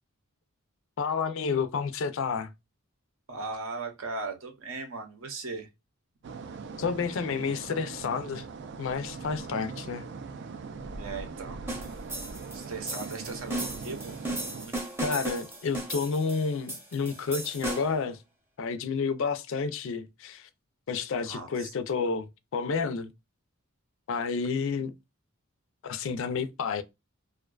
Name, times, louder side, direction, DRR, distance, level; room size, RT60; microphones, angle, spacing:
voice 1, 1.0-2.5 6.8-8.5 8.8-10.0 15.0-18.2 18.6-20.5 20.9-23.1 24.1-24.9 25.8-26.8, left 5 dB, 65° left, 0.4 m, -30 dB
voice 2, 3.3-5.7 11.0-11.6 12.5-14.1 14.6-14.7 21.2-21.7, right 3 dB, 70° right, 0.7 m, -38 dB
sound 1, 6.2-14.7, right 4 dB, 55° right, 0.3 m, -41 dB
sound 2, 11.7-18.1, right 1 dB, 10° right, 0.7 m, -36 dB
2.4 x 2.2 x 2.3 m
head